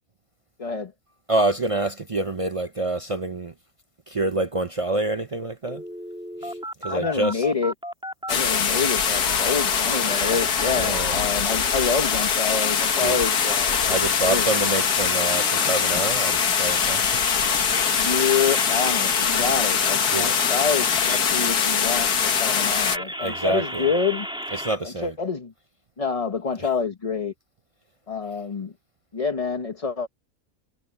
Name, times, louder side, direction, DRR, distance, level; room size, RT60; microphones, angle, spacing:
voice 1, 0.6-0.9 6.9-7.7 8.3-14.5 17.9-24.3 24.8-25.5 26.0-27.3 28.1-28.7 29.1-30.1, left 5 dB, 30° left, 0.9 m, -27 dB
voice 2, 1.3-3.5 4.1-5.8 6.4-7.4 10.7-11.1 13.0-13.2 13.9-17.0 20.1-20.4 23.2-23.9 24.5-25.1, right 2 dB, 40° right, 0.5 m, -27 dB
sound 1, 5.7-8.3 8.6-11.2 11.6-24.8, equal, 5° right, 3.0 m, -36 dB
sound 2, 8.3-23.0, left 7 dB, 85° left, 1.9 m, -22 dB
omnidirectional pair, 1.6 m